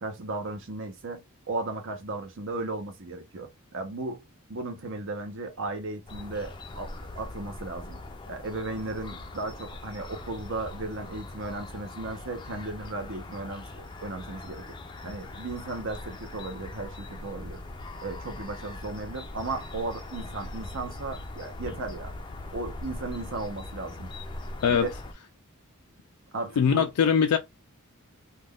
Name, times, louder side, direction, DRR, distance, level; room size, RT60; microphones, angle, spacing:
voice 1, 0.0-4.2 4.5-8.0 8.3-14.8 15.0-17.6 18.0-22.1 22.5-24.1 24.7-24.9 26.3-26.9, right 2 dB, 60° right, 0.7 m, -35 dB
sound 1, 6.1-25.1, left 2 dB, 20° left, 0.4 m, -41 dB
voice 2, 26.6-27.4, left 7 dB, 85° left, 0.4 m, -21 dB
2.4 x 2.2 x 3.5 m
head